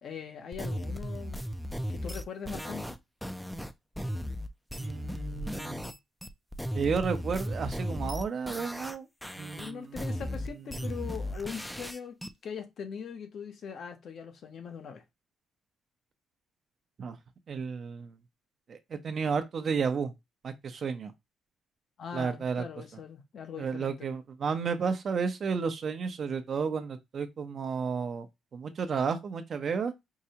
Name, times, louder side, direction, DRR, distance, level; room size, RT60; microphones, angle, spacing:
voice 1, 0.0-1.4 1.9-3.0 9.6-12.2 12.4-15.0 22.0-24.1, left 7 dB, 60° left, 0.8 m, -41 dB
sound 1, 0.5-6.0 6.2-9.0 9.2-12.3, equal, ahead, 0.4 m, -36 dB
voice 2, 4.8-5.9 6.7-9.1 9.4-10.2 10.7-10.9 17.0-17.2 17.5-18.2 18.7-20.1 20.4-21.1 22.1-22.6 23.6-28.3 28.5-29.9, right 5 dB, 50° right, 0.7 m, -32 dB
4.7 x 2.3 x 2.8 m
cardioid pair, 90°, 0 cm